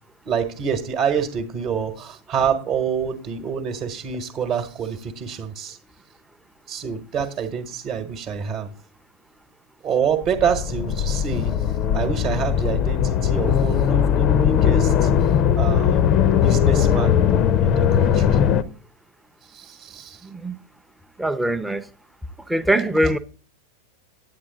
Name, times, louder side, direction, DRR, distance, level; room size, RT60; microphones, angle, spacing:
voice 1, 0.2-5.8 6.7-8.7 9.8-16.1 16.4-17.3 17.6-18.4 19.5-20.3, right 7 dB, 30° right, 1.2 m, -27 dB
sound 1, 10.2-18.6, left 9 dB, 35° left, 0.6 m, -19 dB
voice 2, 20.2-20.5 21.2-21.8 22.5-23.2, right 1 dB, 5° right, 0.7 m, -22 dB
9.6 x 8.7 x 3.8 m
figure-of-eight pair, 90°, 0 cm